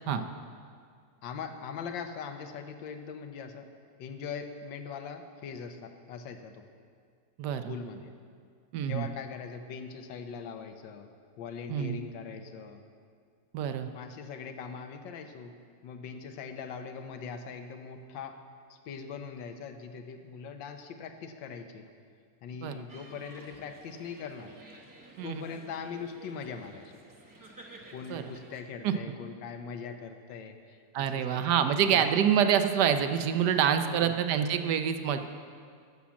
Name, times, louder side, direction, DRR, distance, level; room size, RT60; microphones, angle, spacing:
voice 1, 1.2-3.7 4.0-6.6 7.7-8.1 8.9-11.1 11.4-12.8 13.9-15.5 15.8-18.4 18.7-21.9 22.4-24.5 25.2-27.0 27.9-32.1 33.8-34.1, left 6 dB, 80° left, 7 dB, 1.5 m, -41 dB
voice 2, 7.4-7.7 8.7-9.1 11.7-12.0 13.5-13.9 22.6-22.8 25.2-25.4 28.1-28.3 28.8-28.9 30.9-35.2, right 8 dB, 70° right, 9 dB, 1.2 m, -26 dB
sound 1, 22.9-28.6, right 2 dB, 15° right, 0.7 m, -52 dB
11.5 x 7.2 x 7.3 m, 2.2 s
omnidirectional pair, 2.0 m